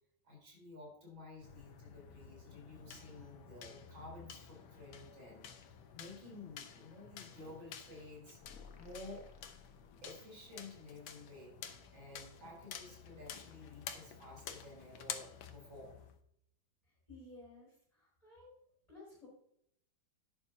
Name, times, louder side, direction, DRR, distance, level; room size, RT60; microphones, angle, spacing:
voice 1, 0.2-8.4 8.8-9.3 10.0-16.0, left 2 dB, 75° right, -1 dB, 4.4 m, -53 dB
sound 1, 1.4-16.2, left 7 dB, 85° left, 1.7 m, -51 dB
sound 2, 8.4-10.5, left 6 dB, 50° left, 1.3 m, -57 dB
voice 2, 17.1-18.5 18.9-19.3, left 2 dB, 20° left, -7 dB, 4.7 m, -55 dB
11.0 x 10.5 x 2.7 m, 0.73 s
omnidirectional pair, 2.1 m